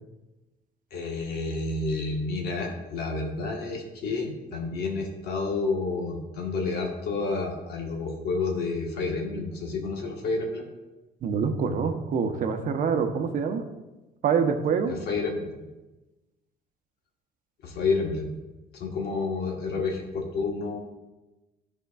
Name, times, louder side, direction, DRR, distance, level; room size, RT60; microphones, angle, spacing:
voice 1, 0.9-10.6 14.9-15.5 17.6-18.3 18.7-20.8, left 3 dB, 70° left, 1 dB, 1.3 m, -30 dB
voice 2, 11.2-13.6 14.2-14.9, right 6 dB, 50° right, 7 dB, 0.8 m, -25 dB
11.5 x 4.5 x 2.3 m, 1.1 s
cardioid pair, 110°, 17 cm